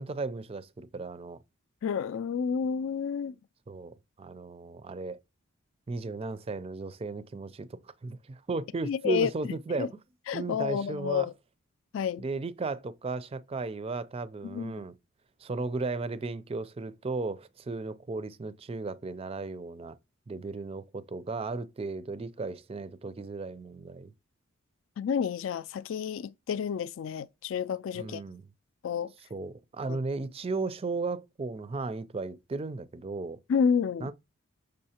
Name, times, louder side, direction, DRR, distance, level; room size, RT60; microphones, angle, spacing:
voice 1, 0.0-1.4 3.7-5.2 5.9-9.9 10.3-11.3 12.2-15.0 15.4-20.0 20.3-24.1 27.9-28.5 29.3-33.4 34.0-34.1, right 3 dB, 25° right, 0.4 m, -35 dB
voice 2, 1.8-3.3 8.8-9.3 9.8-9.9 10.3-11.3 11.9-12.2 14.4-14.7 25.0-28.2 28.8-29.1 29.9-30.0 33.5-34.1, left 7 dB, 60° left, 0.3 m, -30 dB
6.5 x 5.3 x 2.8 m
head